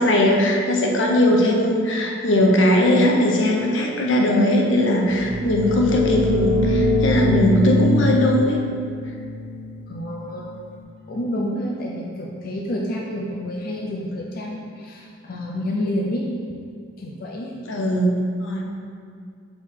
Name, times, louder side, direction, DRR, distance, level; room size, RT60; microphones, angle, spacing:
voice 1, 0.0-8.6 17.7-18.1 18.4-18.7, left 1 dB, 80° left, 0 dB, 0.9 m, -19 dB
sound 1, 5.0-10.6, left 1 dB, 55° right, 0.8 m, -23 dB
voice 2, 9.9-10.5 11.1-16.3 17.0-17.5, left 1 dB, 50° left, -2 dB, 0.6 m, -29 dB
6.8 x 4.4 x 3.7 m, 2.3 s
head